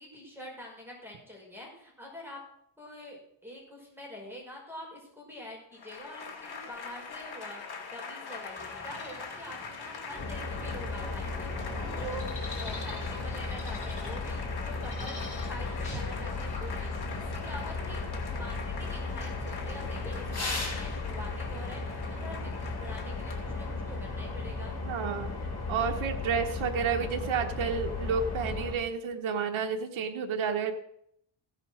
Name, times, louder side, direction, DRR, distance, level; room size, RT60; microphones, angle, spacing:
voice 1, 0.0-2.4 2.8-11.5 12.0-15.2 15.5-18.1 18.4-24.7, equal, 5° right, -3 dB, 5.3 m, -45 dB
Applause / Crowd, 5.7-24.3, left 5 dB, 55° left, 2.8 m, -43 dB
sound 1, 8.5-20.8, left 1 dB, 15° left, 6.1 m, -47 dB
sound 2, 10.2-28.7, left 3 dB, 35° left, 3.8 m, -35 dB
voice 2, 24.8-25.3 25.7-30.8, right 6 dB, 80° right, 4 dB, 1.2 m, -30 dB
16.0 x 5.7 x 6.4 m, 0.73 s
cardioid pair, 120°, 46 cm